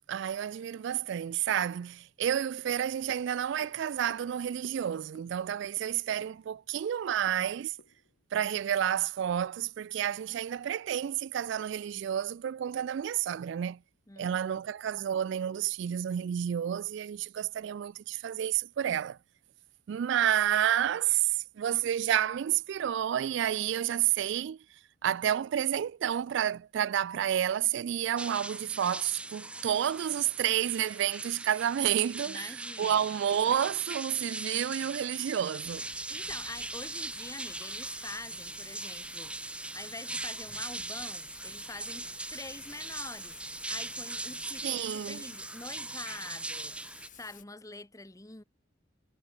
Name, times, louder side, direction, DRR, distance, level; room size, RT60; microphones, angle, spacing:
voice 1, 0.1-7.8 8.3-13.8 14.2-19.2 19.9-24.6 25.0-35.8 44.6-45.2, right 10 dB, 65° right, 0.3 m, -30 dB
sound 1, 2.5-9.0 9.4-9.5, left 2 dB, 80° left, 1.5 m, -58 dB
voice 2, 14.1-14.5 32.3-33.0 36.1-39.3 39.7-43.4 43.7-48.4, left 2 dB, 15° left, 1.1 m, -46 dB
sound 2, 28.2-47.1, right 2 dB, 5° right, 0.5 m, -40 dB
Thunder / Rain, 35.6-47.4, left 9 dB, 45° left, 3.6 m, -54 dB
head